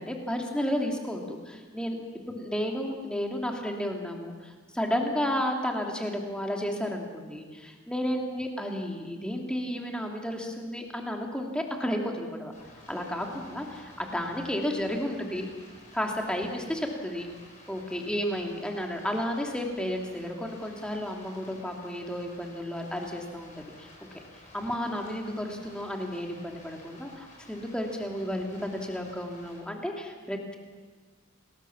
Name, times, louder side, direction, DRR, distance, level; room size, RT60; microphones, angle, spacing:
voice 1, 0.0-2.0 2.3-12.5 12.9-15.5 15.9-17.3 17.7-23.9 24.5-30.6, equal, 5° left, 1 dB, 2.8 m, -32 dB
Stream, 12.5-29.6, left 2 dB, 35° left, 6.9 m, -53 dB
28.0 x 20.0 x 7.3 m, 1.4 s
head